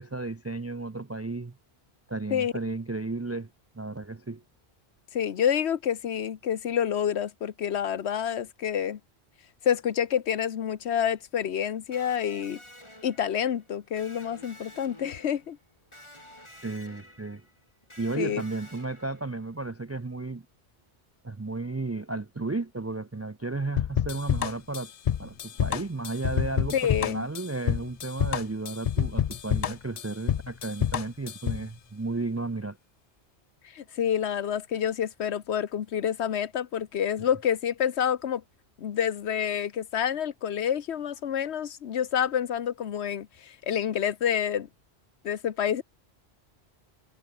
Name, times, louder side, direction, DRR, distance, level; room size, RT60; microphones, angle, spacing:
voice 1, 0.0-1.5 2.1-3.5 3.8-4.4 16.6-17.4 18.0-20.4 21.2-24.9 25.2-32.8, right 3 dB, 25° right, 0.3 m, -33 dB
voice 2, 5.1-9.0 9.6-12.6 13.0-15.6 18.2-18.4 26.7-27.3 33.7-38.4 38.8-44.7 45.2-45.8, left 9 dB, 85° left, 1.2 m, -28 dB
Electric guitar, 11.9-19.6, left 1 dB, 25° left, 6.3 m, -51 dB
sound 1, 23.8-31.7, left 9 dB, 55° left, 0.4 m, -28 dB
omnidirectional pair, 1.1 m